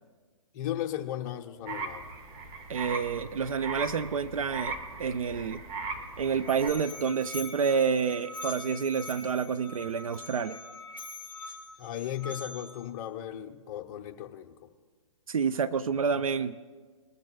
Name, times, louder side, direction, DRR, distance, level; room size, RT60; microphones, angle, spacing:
voice 1, 0.5-2.1 11.8-14.7, left 11 dB, 35° left, 6 dB, 0.9 m, -36 dB
sound 1, 1.7-6.7, right 4 dB, 30° right, 1.3 m, -38 dB
voice 2, 2.7-5.6 6.2-10.6 15.3-16.5, right 6 dB, 75° right, 13 dB, 0.5 m, -29 dB
Musical instrument, 6.0-12.9, left 2 dB, 10° right, 2.1 m, -43 dB
20.5 x 13.0 x 2.3 m, 1.4 s
hypercardioid pair, 135°, 18 cm